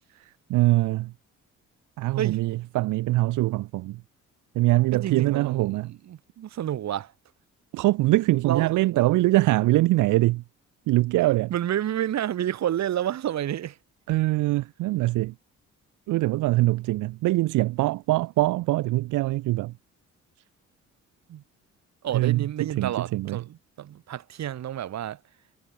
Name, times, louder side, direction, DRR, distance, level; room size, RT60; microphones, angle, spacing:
voice 1, 0.1-1.1 2.0-4.0 4.5-5.9 7.7-10.4 10.9-11.5 14.1-15.3 16.1-19.7 22.1-23.4, right 18 dB, 85° right, 0.6 m, -23 dB
voice 2, 4.9-7.1 8.4-9.0 11.5-13.8 21.3-21.4 22.0-25.2, right 11 dB, 60° right, 1.5 m, -30 dB
cardioid pair, 90°, 30 cm